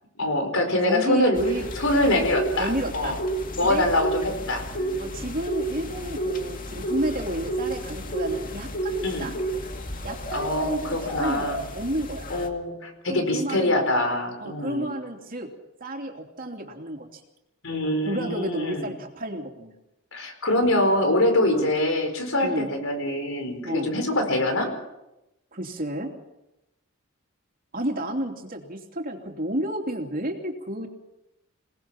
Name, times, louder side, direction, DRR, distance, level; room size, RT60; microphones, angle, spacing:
voice 1, 0.2-1.4 1.8-3.2 3.6-5.2 9.0-9.3 10.3-11.6 12.3-14.9 17.6-18.9 20.1-24.7, left 1 dB, 70° left, 5 dB, 5.1 m, -24 dB
voice 2, 0.8-1.7 2.1-2.3 2.6-3.2 3.6-3.8 5.0-9.4 10.0-12.3 13.1-13.8 14.4-15.5 15.8-17.2 18.1-19.7 21.4-21.7 22.4-22.7 23.6-23.9 25.5-26.1 27.7-30.9, right 1 dB, 45° right, 2 dB, 3.0 m, -31 dB
sound 1, 1.4-12.5, right 1 dB, 40° left, 2.2 m, -31 dB
28.0 x 19.0 x 6.0 m, 0.93 s
head